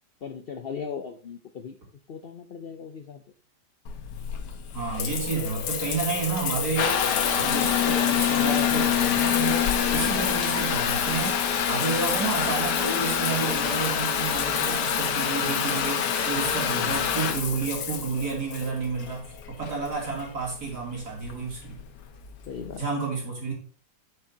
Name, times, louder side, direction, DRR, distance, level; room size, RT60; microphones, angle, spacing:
voice 1, 0.2-1.8 2.1-3.2 16.7-17.1 22.5-22.8, left 6 dB, 70° left, 8 dB, 0.5 m, -38 dB
Water tap faucet / Bathtub (filling or washing) / Trickle dribble, 3.9-22.8, left 8 dB, 90° left, 1.5 m, -26 dB
voice 2, 4.7-7.0 7.3-11.4 11.7-21.8 22.8-23.5, right 4 dB, 70° right, -3 dB, 3.5 m, -31 dB
8.6 x 7.9 x 2.8 m, 0.40 s
omnidirectional pair, 1.8 m